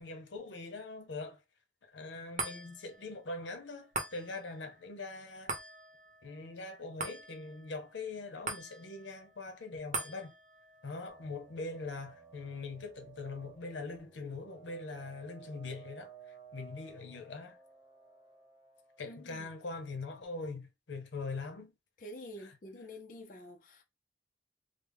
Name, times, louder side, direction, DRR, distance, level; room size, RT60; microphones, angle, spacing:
voice 1, 0.0-1.4 1.8-5.5 6.2-10.3 10.8-17.6 19.0-21.7, left 3 dB, 85° left, 0.7 m, -42 dB
sound 1, 2.4-15.0 15.4-15.5, right 3 dB, 45° right, 0.8 m, -45 dB
sound 2, 11.1-20.3, right 7 dB, 5° right, 1.1 m, -57 dB
voice 2, 19.0-19.5 22.0-23.8, left 1 dB, 45° left, 0.5 m, -48 dB
3.3 x 2.1 x 3.4 m
head